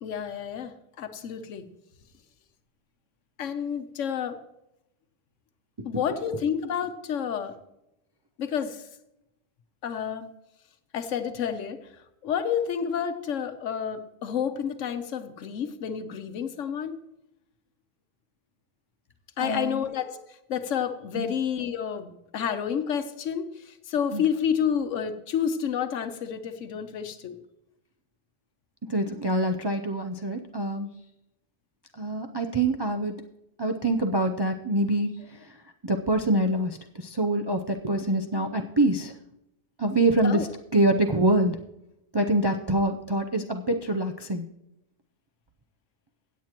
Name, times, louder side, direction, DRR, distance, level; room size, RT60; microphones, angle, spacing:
voice 1, 0.0-1.6 3.4-4.4 5.8-7.5 8.4-8.9 9.8-10.3 10.9-11.8 12.2-17.0 19.4-20.2 20.5-27.4 40.2-40.5, left 8 dB, 90° left, 9 dB, 1.2 m, -30 dB
voice 2, 19.4-19.8 21.1-21.3 24.1-24.2 28.8-30.9 32.0-33.2 33.6-35.6 35.8-39.1 39.8-40.5 40.7-41.6 42.1-44.5, right 1 dB, 30° right, 4 dB, 0.4 m, -25 dB
16.5 x 8.1 x 3.0 m, 0.85 s
omnidirectional pair, 1.3 m